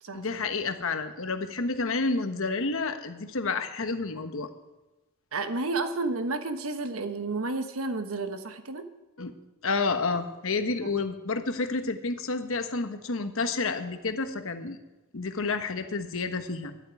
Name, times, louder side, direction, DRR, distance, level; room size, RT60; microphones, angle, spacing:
voice 1, 0.1-4.5 9.2-9.3 9.6-14.8 15.1-16.7, left 3 dB, 65° left, 8 dB, 1.2 m, -30 dB
voice 2, 5.3-8.9 10.8-10.9, right 3 dB, 70° right, 8 dB, 1.2 m, -31 dB
11.5 x 9.1 x 9.6 m, 1.1 s
head